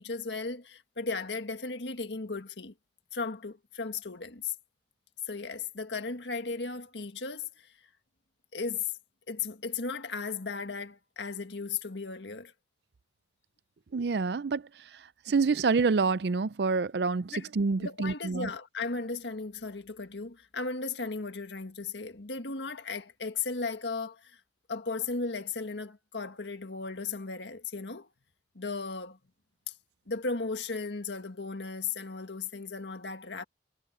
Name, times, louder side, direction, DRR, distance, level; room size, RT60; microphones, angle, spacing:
voice 1, 0.0-2.7 3.1-4.5 5.3-7.7 8.5-8.9 9.3-12.5 17.3-17.5 17.8-24.4 24.7-28.1 28.6-29.2 30.1-33.4, left 4 dB, 85° left, 1.7 m, -36 dB
voice 2, 13.9-14.6 15.3-18.5, right 4 dB, 70° right, 0.5 m, -27 dB
head